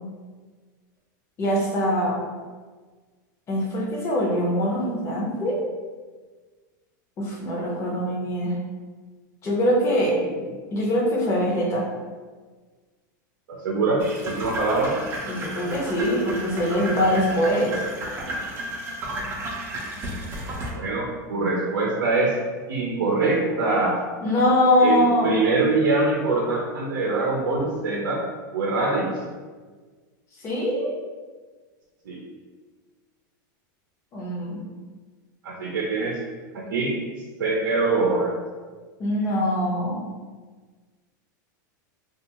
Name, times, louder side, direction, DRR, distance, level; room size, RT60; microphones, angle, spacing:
voice 1, 1.4-2.2 3.5-5.6 7.2-8.5 9.4-10.2 10.7-11.9 15.3-17.8 24.2-25.3 30.4-30.9 34.1-34.7 39.0-40.0, equal, 25° left, -3 dB, 0.7 m, -23 dB
voice 2, 13.5-15.0 20.7-22.3 22.7-24.0 24.8-28.2 28.5-29.1 32.1-32.2 35.4-36.2 36.5-36.9 37.4-38.3, right 3 dB, 90° right, -2 dB, 0.5 m, -23 dB
sound 1, 14.0-20.7, right 1 dB, 25° right, 0.5 m, -33 dB
2.5 x 2.3 x 2.8 m, 1.4 s
supercardioid pair, 135°, 11 cm